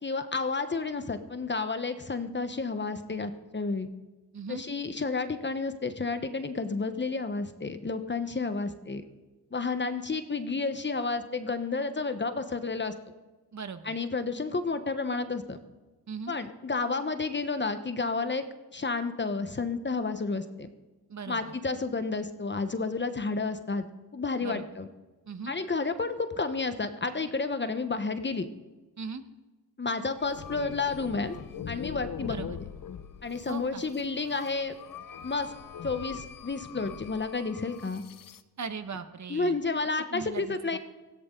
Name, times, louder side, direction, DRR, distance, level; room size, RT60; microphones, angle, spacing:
voice 1, 0.0-3.9 4.5-9.0 9.5-12.9 13.8-15.6 16.3-18.4 18.7-20.7 21.3-23.8 24.1-24.9 25.5-28.5 29.8-31.4 31.7-32.4 33.2-34.7 35.2-35.5 35.8-38.0 39.3-40.8, left 4 dB, 25° left, 9 dB, 1.2 m, -31 dB
voice 2, 13.5-13.9 16.1-16.3 21.1-21.4 24.4-24.6 25.3-25.5 29.0-29.2 32.2-32.6 33.5-33.8 38.6-39.6 40.1-40.8, right 5 dB, 45° right, 9 dB, 1.4 m, -38 dB
sound 1, 30.2-38.4, left 8 dB, 55° left, 0.9 m, -42 dB
17.5 x 16.0 x 3.9 m, 1.2 s
cardioid pair, 70°, 40 cm